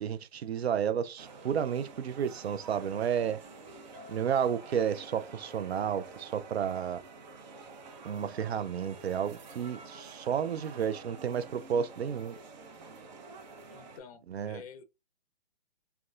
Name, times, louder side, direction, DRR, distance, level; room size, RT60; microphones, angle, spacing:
voice 1, 0.0-3.4 4.1-7.0 8.0-12.3 14.3-14.6, right 8 dB, 90° right, 0.5 m, -31 dB
sound 1, 1.2-14.0, right 4 dB, 45° right, 0.7 m, -49 dB
Ringtone, 3.4-4.6, left 4 dB, 10° right, 1.8 m, -54 dB
voice 2, 13.7-14.8, left 6 dB, 35° left, 0.5 m, -49 dB
3.6 x 2.3 x 2.3 m
hypercardioid pair, 140°, 31 cm